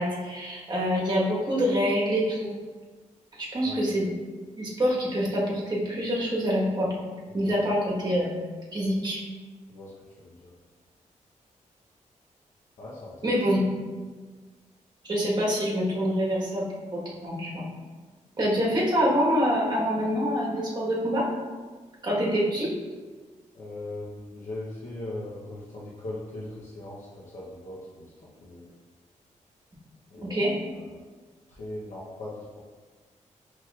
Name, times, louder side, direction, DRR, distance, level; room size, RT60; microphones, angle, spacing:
voice 1, 0.0-2.5 3.3-4.1 4.6-6.9 7.3-8.4 8.7-9.2 13.2-13.7 15.0-17.7 18.4-21.3 22.0-22.7 30.2-30.6, equal, 35° right, -5 dB, 1.2 m, -26 dB
voice 2, 10.2-10.5 12.8-13.4 23.5-28.7 30.1-31.1 31.5-32.6, left 1 dB, 75° left, -7 dB, 0.7 m, -40 dB
5.8 x 3.1 x 2.3 m, 1.4 s
wide cardioid pair, 110°, 13 cm